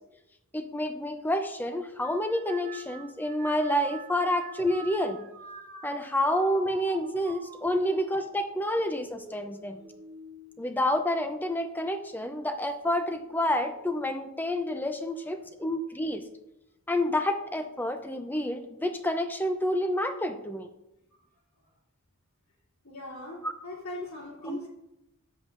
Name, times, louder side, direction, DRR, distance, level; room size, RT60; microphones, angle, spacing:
voice 1, 0.5-5.3 5.8-9.8 10.6-16.2 16.9-20.7 23.4-23.5 24.4-24.6, left 1 dB, 10° left, 7 dB, 0.5 m, -29 dB
sound 1, 2.0-11.6 12.1-12.7 13.6-14.0, right 4 dB, 35° right, 0.8 m, -48 dB
voice 2, 15.2-15.7 22.8-24.7, left 1 dB, 85° left, -6 dB, 2.8 m, -41 dB
9.7 x 7.5 x 2.6 m, 0.87 s
head